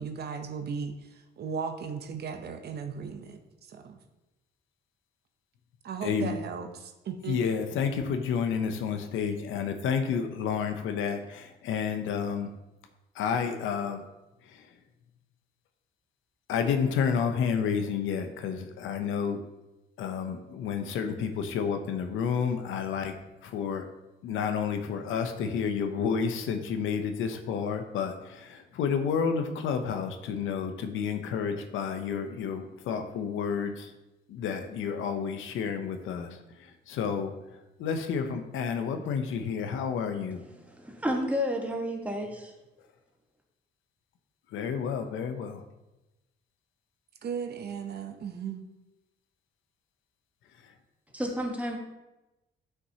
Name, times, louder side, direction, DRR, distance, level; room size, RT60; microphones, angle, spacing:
voice 1, 0.0-4.0 5.8-7.4 47.2-48.6, right 6 dB, 55° right, 6 dB, 0.7 m, -36 dB
voice 2, 6.0-6.3 7.3-12.5 13.1-14.0 14.4-14.7 16.5-19.4 20.0-23.2 23.4-23.9 24.2-33.9 34.3-37.3 37.8-40.4 44.5-45.6 50.6-50.7, left 6 dB, 85° left, 7 dB, 0.7 m, -30 dB
voice 3, 40.7-42.5 51.1-51.8, equal, 5° right, 1 dB, 1.3 m, -31 dB
7.9 x 5.9 x 2.8 m, 1.0 s
cardioid pair, 90°, 20 cm